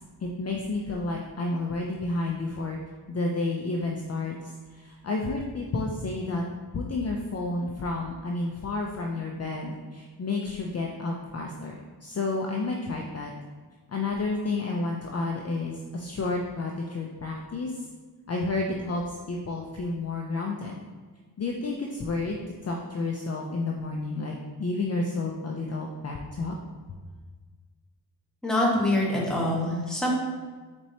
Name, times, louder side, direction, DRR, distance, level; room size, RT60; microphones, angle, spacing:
voice 1, 0.2-2.8 3.1-4.4 4.7-6.4 6.7-13.3 13.9-17.8 18.3-20.7 21.4-26.6, left 3 dB, 35° left, -1 dB, 0.5 m, -31 dB
voice 2, 28.4-30.1, left 1 dB, ahead, -4 dB, 1.2 m, -25 dB
4.6 x 4.2 x 2.8 m, 1.4 s
cardioid pair, 85°, 42 cm